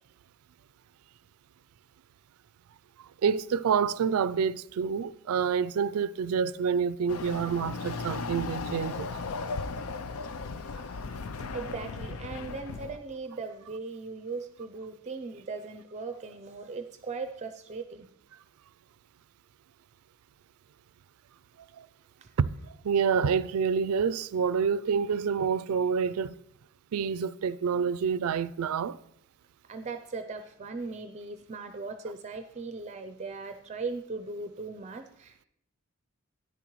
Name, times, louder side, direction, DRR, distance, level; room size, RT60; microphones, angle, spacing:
voice 1, 3.2-9.2 21.8-21.9 22.4-26.3 26.9-29.0, right 6 dB, 90° right, 0.4 m, -28 dB
Chatter / Car passing by / Motorcycle, 7.1-13.0, left 4 dB, 80° left, 0.5 m, -36 dB
voice 2, 11.5-18.1 22.2-22.3 29.7-35.4, right 4 dB, 30° right, 0.5 m, -38 dB
13.0 x 10.5 x 3.1 m
head